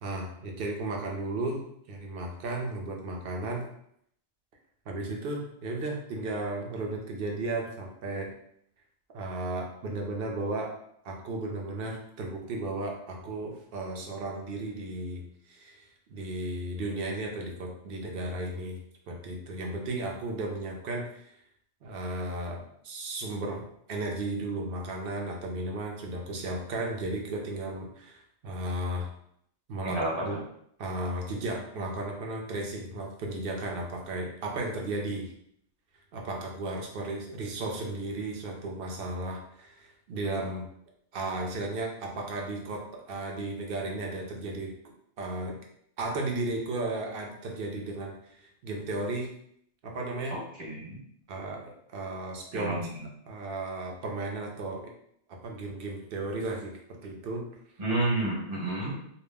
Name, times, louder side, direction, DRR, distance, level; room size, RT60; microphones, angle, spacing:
voice 1, 0.0-3.7 4.9-8.3 9.1-10.8 11.0-21.3 21.8-29.1 29.7-30.4 30.8-35.3 36.1-40.7 41.1-44.7 45.2-45.6 46.0-49.3 49.8-50.4 51.3-52.8 53.3-54.9 55.3-57.4, right 2 dB, 60° right, 1 dB, 0.7 m, -34 dB
voice 2, 29.8-30.2 50.3-51.0 52.5-53.0 57.8-58.9, right 2 dB, 35° right, -6 dB, 0.9 m, -30 dB
2.3 x 2.0 x 3.3 m, 0.70 s
omnidirectional pair, 1.2 m